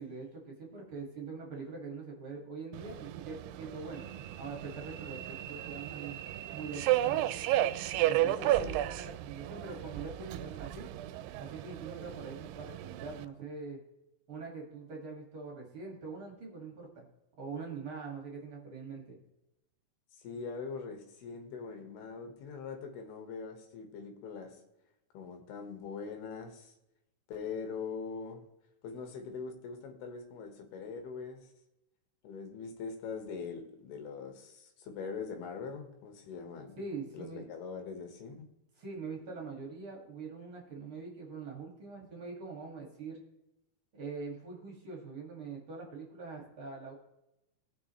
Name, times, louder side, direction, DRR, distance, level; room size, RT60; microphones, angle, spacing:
voice 1, 0.0-4.1 4.4-6.2 6.5-7.3 8.0-10.9 11.4-13.8 14.3-17.1 17.4-19.2 36.8-37.4 38.8-43.2 43.9-46.9, right 4 dB, 40° right, 0 dB, 2.3 m, -43 dB
Subway metro underground, 2.7-13.3, right 14 dB, 90° right, 2.6 m, -34 dB
voice 2, 8.2-8.8 20.1-24.6 25.1-26.7 27.3-28.5 28.8-31.5 32.2-36.8 37.1-38.5, left 5 dB, 80° left, 4 dB, 3.4 m, -42 dB
18.5 x 6.2 x 3.2 m, 0.91 s
omnidirectional pair, 4.6 m